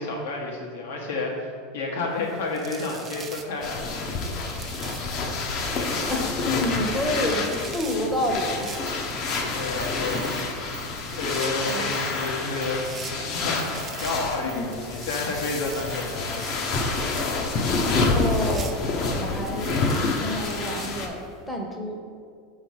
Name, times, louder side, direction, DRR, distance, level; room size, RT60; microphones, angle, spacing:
voice 1, 0.0-4.0 9.5-10.4 10.8-12.9 13.2-16.5, left 3 dB, 80° left, -1 dB, 1.2 m, -31 dB
sound 1, 2.2-21.4, right 5 dB, 20° right, 0.5 m, -45 dB
sound 2, 3.6-21.1, left 3 dB, 40° left, 0.7 m, -28 dB
voice 2, 6.0-8.7 11.6-11.9 14.5-14.7 17.8-18.8 19.2-19.7 20.1-21.2 21.5-22.0, left 1 dB, 5° left, 0 dB, 0.8 m, -29 dB
sound 3, 8.6-16.1, right 9 dB, 75° right, 0.4 m, -45 dB
6.1 x 3.1 x 5.5 m, 2.2 s
supercardioid pair, 140°, 0 cm